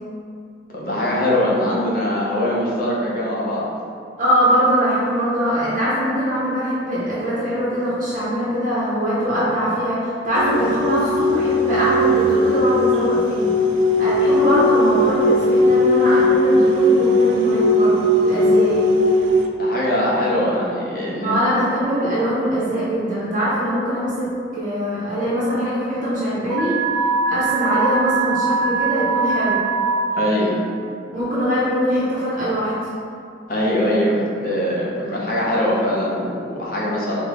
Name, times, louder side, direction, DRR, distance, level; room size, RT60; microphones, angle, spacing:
voice 1, 0.7-3.7 19.6-21.5 30.2-30.5 33.5-34.1 34.4-37.2, left 1 dB, 50° left, -5 dB, 0.7 m, -22 dB
voice 2, 4.2-13.5 14.0-18.9 21.2-26.8 27.3-29.6 31.1-32.7, equal, 45° right, -9 dB, 0.6 m, -22 dB
sound 1, 10.4-19.4, left 1 dB, 80° right, 0.3 m, -18 dB
Alarm, 26.5-30.0, right 4 dB, 10° left, 0.9 m, -21 dB
4.2 x 2.1 x 2.9 m, 2.4 s
head